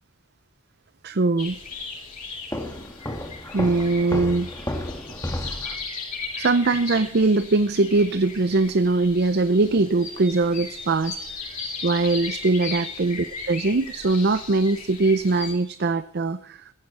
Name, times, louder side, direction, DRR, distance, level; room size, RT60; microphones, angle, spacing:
voice 1, 1.0-1.6 3.5-4.5 6.4-11.2 11.8-16.7, right 3 dB, 50° right, 13 dB, 0.6 m, -21 dB
sound 1, 1.4-15.5, left 4 dB, 40° left, 7.4 m, -37 dB
Walk footsteps, 2.5-5.8, left 1 dB, 15° left, 2.3 m, -32 dB
16.0 x 15.5 x 4.3 m, 0.68 s
head